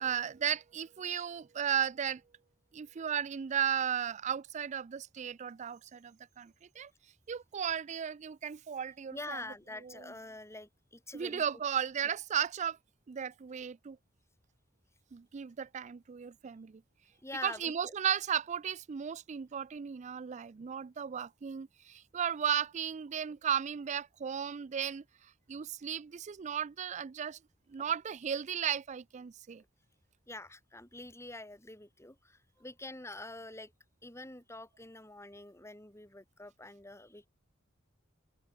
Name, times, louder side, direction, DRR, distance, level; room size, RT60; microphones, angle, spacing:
voice 1, 0.0-2.2 2.7-6.9 7.3-9.4 9.8-10.1 11.1-12.8 13.1-14.0 15.1-16.8 17.4-25.0 25.5-27.4 27.7-29.6, right 8 dB, 35° right, 0.4 m, -35 dB
voice 2, 9.1-11.4 17.2-17.9 30.3-33.7 34.0-37.3, left 2 dB, 15° left, 5.0 m, -46 dB
head